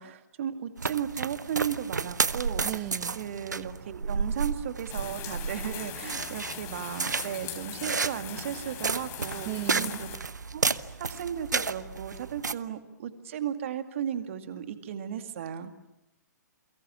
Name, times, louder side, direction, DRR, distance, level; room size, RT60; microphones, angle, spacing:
voice 1, 0.0-2.9 3.2-10.1 10.5-15.7, right 9 dB, 45° right, 9 dB, 2.2 m, -35 dB
sound 1, 0.8-12.5, right 4 dB, 70° right, 1.0 m, -32 dB
voice 2, 2.6-3.2 9.4-10.0, right 15 dB, 25° right, 15 dB, 1.3 m, -35 dB
sound 2, 4.9-10.2, left 10 dB, 25° left, 3.9 m, -41 dB
29.0 x 24.5 x 7.3 m, 0.87 s
figure-of-eight pair, 120°, 10 cm